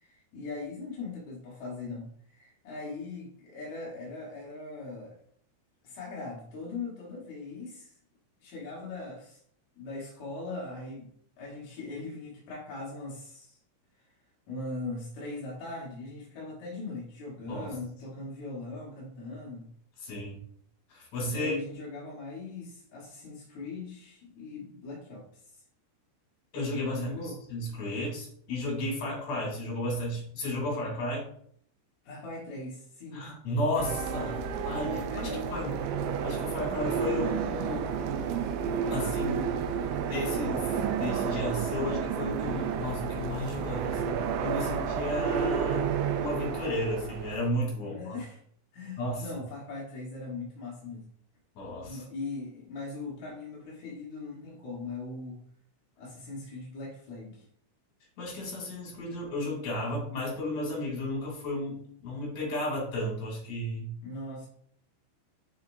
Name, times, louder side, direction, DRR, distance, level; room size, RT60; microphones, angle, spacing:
voice 1, 0.0-5.2 5.8-7.9 8.4-9.4 9.8-13.6 14.5-19.7 21.2-25.4 26.9-27.4 32.0-33.3 34.8-35.8 47.8-48.4 48.7-51.1 51.9-55.4 56.0-57.5 64.0-64.5, left 3 dB, 65° left, -5 dB, 1.8 m, -40 dB
voice 2, 20.0-20.4 20.9-21.5 26.5-31.3 33.1-35.7 36.2-37.9 38.9-39.5 40.1-45.9 46.2-48.2 49.0-49.2 51.6-52.0 58.2-63.9, left 1 dB, 40° left, -3 dB, 3.7 m, -33 dB
sound 1, 33.8-47.5, right 7 dB, 85° right, 3.0 m, -31 dB
7.3 x 6.5 x 2.6 m, 0.64 s
omnidirectional pair, 5.4 m